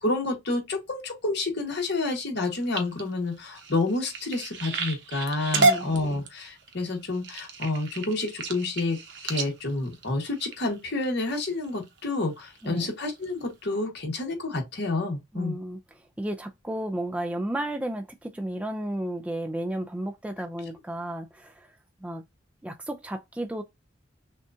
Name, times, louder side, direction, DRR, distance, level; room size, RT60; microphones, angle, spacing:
voice 1, 0.0-9.0 9.2-15.6, left 2 dB, 55° left, 1.5 m, -29 dB
sound 1, 2.4-11.0 11.6-12.0 12.4-12.8 13.2-13.3 13.6-13.7, right 3 dB, 60° right, 1.0 m, -30 dB
voice 2, 5.5-5.9 12.6-12.9 15.3-15.8 16.2-21.7 22.0-22.2 22.6-23.6, right 1 dB, 5° right, 0.4 m, -33 dB
6.2 x 2.4 x 2.7 m
head